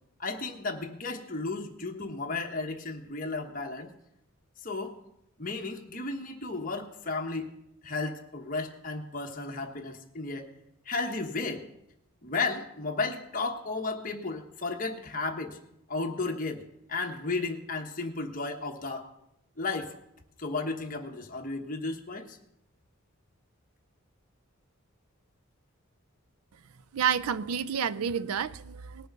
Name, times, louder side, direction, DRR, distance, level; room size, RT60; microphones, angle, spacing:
voice 1, 0.2-3.9 4.6-4.9 5.4-7.4 7.8-10.5 10.9-11.7 12.2-15.6 15.9-19.1 19.6-19.9 20.4-22.4, left 3 dB, 40° left, 2 dB, 1.2 m, -34 dB
voice 2, 26.9-29.1, right 7 dB, 80° right, 17 dB, 0.5 m, -29 dB
19.0 x 6.7 x 5.3 m, 0.81 s
head